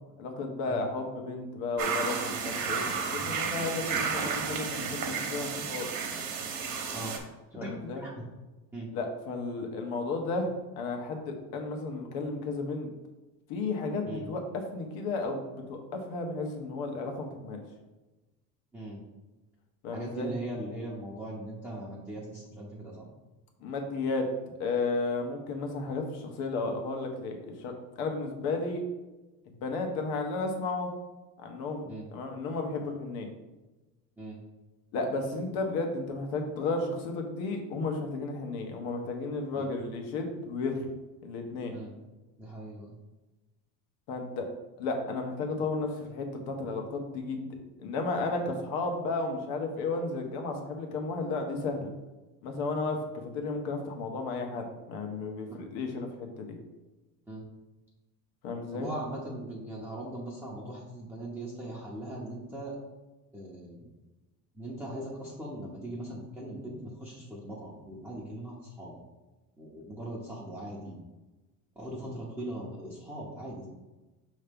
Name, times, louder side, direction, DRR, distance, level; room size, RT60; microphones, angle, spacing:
voice 1, 0.2-5.9 7.6-8.0 8.9-12.9 13.5-17.6 19.8-20.3 23.6-24.3 24.6-28.8 29.4-30.9 31.4-33.3 34.9-40.9 41.2-41.7 44.1-44.5 44.8-47.4 47.8-51.9 52.4-56.6 58.4-58.9, left 3 dB, 70° left, 3 dB, 1.3 m, -33 dB
sound 1, 1.8-7.2, right 5 dB, 50° right, 1.1 m, -32 dB
voice 2, 7.5-8.1 8.7-8.9 14.0-14.3 18.7-19.0 19.9-23.1 31.9-32.1 34.2-34.4 39.5-39.7 41.7-41.9 42.4-42.9 57.3-57.4 58.7-62.8 63.3-63.9 64.5-69.0 69.6-71.0 71.8-73.7, right 1 dB, 5° right, -6 dB, 0.8 m, -40 dB
5.8 x 3.2 x 5.2 m, 1.1 s
cardioid pair, 150°, 38 cm